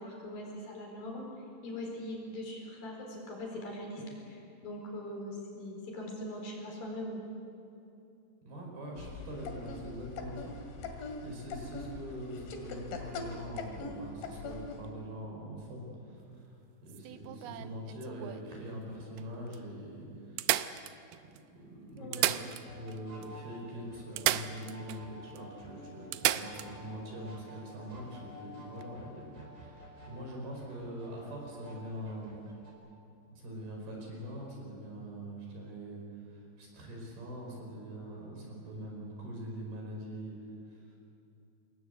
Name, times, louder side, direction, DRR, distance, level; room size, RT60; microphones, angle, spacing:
voice 1, 0.0-7.2 22.0-22.4 26.3-26.5, left 1 dB, 50° left, 0 dB, 6.0 m, -41 dB
voice 2, 8.5-10.5 10.8-16.5 16.8-20.7 21.2-22.4 22.7-32.4 33.3-40.4 40.7-41.0, equal, 55° right, -1 dB, 7.0 m, -43 dB
sound 1, 9.0-14.9, left 3 dB, 85° left, 4.6 m, -42 dB
sound 2, 16.9-18.5 19.2-19.3 19.5-19.6 20.4-21.4 22.0-23.0 23.2-23.3 24.2-25.0 25.4-25.5 26.1-26.7 28.7-28.8, right 15 dB, 85° right, 2.2 m, -33 dB
sound 3, 22.6-32.7, equal, 15° right, 4.9 m, -52 dB
27.5 x 21.0 x 8.2 m, 2.8 s
omnidirectional pair, 5.3 m